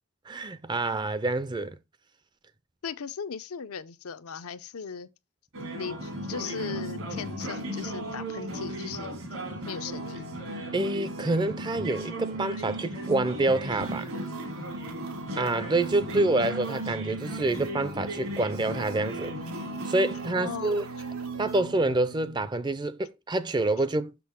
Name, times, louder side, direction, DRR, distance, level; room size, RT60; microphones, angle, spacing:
voice 1, 0.3-1.8 10.7-14.0 15.4-19.4 19.9-20.9 21.4-24.1, right 2 dB, 20° right, 0.4 m, -27 dB
voice 2, 2.8-5.1 5.8-9.2 9.7-10.2 15.9-16.5 20.4-20.9, left 6 dB, 85° left, 0.6 m, -38 dB
sound 1, 5.5-22.5, right 1 dB, 70° right, 2.5 m, -36 dB
sound 2, 13.7-22.0, right 4 dB, 85° right, 1.3 m, -50 dB
6.3 x 6.1 x 3.5 m
head